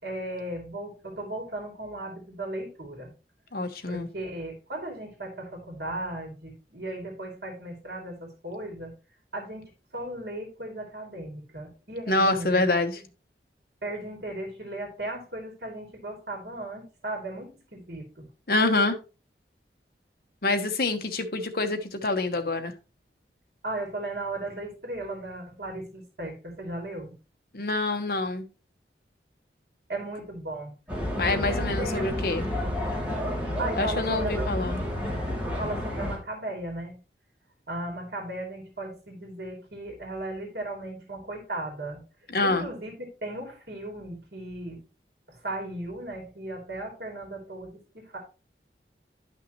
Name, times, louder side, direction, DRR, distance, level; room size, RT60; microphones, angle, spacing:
voice 1, 0.0-3.1 3.9-8.9 9.3-12.7 13.8-18.3 23.6-27.1 29.9-30.7 31.1-32.0 33.6-34.5 35.6-37.0 37.7-42.0 42.4-44.8 45.3-48.2, right 1 dB, 70° right, 2 dB, 2.7 m, -36 dB
voice 2, 3.5-4.1 12.1-13.0 18.5-19.0 20.4-22.7 27.5-28.5 31.1-32.5 33.8-34.8 42.3-42.7, left 2 dB, 55° left, 7 dB, 1.1 m, -26 dB
sound 1, 30.9-36.2, left 1 dB, 10° right, 2.7 m, -30 dB
11.5 x 5.8 x 3.0 m, 0.32 s
head